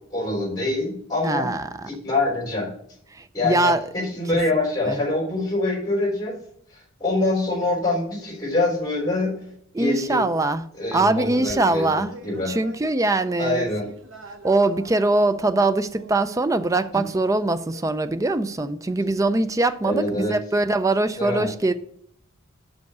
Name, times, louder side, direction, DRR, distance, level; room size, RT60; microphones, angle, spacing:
voice 1, 0.1-1.5 1.8-2.7 3.3-6.3 6.7-9.4 9.7-10.2 10.7-12.5 13.4-13.8 16.9-17.0 19.8-20.4 21.2-21.5, left 2 dB, 20° left, 3.3 m, -25 dB
voice 2, 1.2-1.6 3.2-3.8 4.9-5.0 9.7-10.6 10.9-12.1 12.5-13.7 14.4-21.7, right 2 dB, 15° right, 0.4 m, -22 dB
sound 1, 11.2-17.4 17.7-17.8, right 1 dB, 60° right, 1.1 m, -44 dB
5.7 x 5.3 x 6.6 m
head